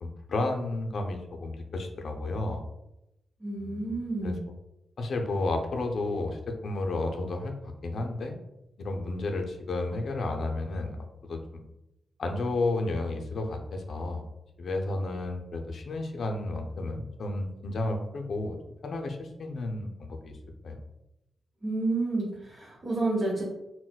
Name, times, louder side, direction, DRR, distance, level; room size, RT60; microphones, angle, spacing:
voice 1, 0.0-2.6 3.6-4.3 5.0-8.4 8.8-11.0 11.3-11.6 12.2-14.2 14.6-18.6 18.8-20.4 20.6-20.8, left 2 dB, 70° left, 3 dB, 0.4 m, -32 dB
voice 2, 3.4-4.4 21.6-23.4, right 2 dB, 40° right, -6 dB, 0.9 m, -30 dB
3.8 x 2.1 x 2.2 m, 0.89 s
cardioid pair, 70°, 0 cm